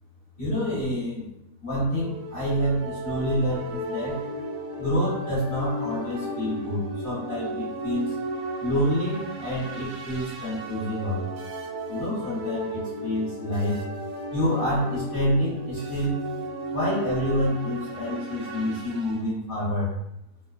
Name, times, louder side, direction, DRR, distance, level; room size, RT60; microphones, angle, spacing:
voice 1, 0.4-1.2 1.6-4.2 4.8-8.1 8.6-11.4 11.9-13.8 14.3-16.2 16.7-19.9, equal, 45° left, -8 dB, 0.9 m, -27 dB
sound 1, 1.9-19.2, right 1 dB, 80° right, 1.1 m, -34 dB
2.5 x 2.2 x 2.3 m, 0.84 s
omnidirectional pair, 1.6 m